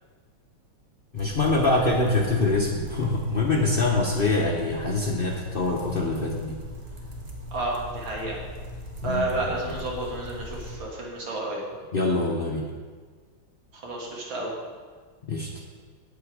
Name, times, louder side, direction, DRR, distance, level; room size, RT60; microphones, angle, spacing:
voice 1, 1.1-6.6 9.0-9.2 9.7-9.8 11.9-12.6 15.3-15.5, left 2 dB, 90° left, -2 dB, 0.4 m, -24 dB
sound 1, 1.1-10.8, left 1 dB, 35° right, 1.1 m, -39 dB
voice 2, 7.5-8.4 9.0-11.6 13.7-14.6, right 2 dB, 65° right, -2 dB, 2.4 m, -31 dB
8.5 x 7.6 x 4.8 m, 1.5 s
omnidirectional pair, 2.3 m